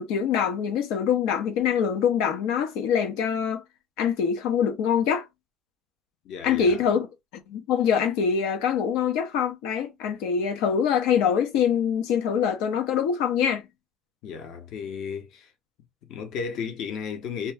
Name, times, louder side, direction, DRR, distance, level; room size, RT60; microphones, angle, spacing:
voice 1, 0.0-3.6 4.0-5.2 6.4-7.1 7.5-13.6, left 7 dB, 90° left, 0.8 m, -24 dB
voice 2, 6.2-6.8 14.2-15.5 16.0-17.5, left 6 dB, 60° left, 0.8 m, -34 dB
2.8 x 2.2 x 3.4 m
cardioid pair, 150°, 0 cm